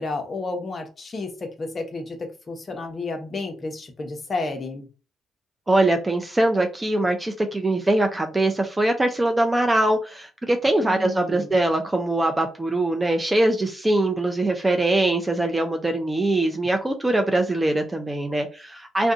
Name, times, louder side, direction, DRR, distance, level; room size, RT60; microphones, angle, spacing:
voice 1, 0.0-4.9 10.8-11.5, left 3 dB, 35° left, 4 dB, 0.8 m, -31 dB
voice 2, 5.7-19.1, right 2 dB, 15° right, 5 dB, 0.5 m, -22 dB
2.5 x 2.2 x 3.8 m, 0.33 s
cardioid pair, 90°, 0 cm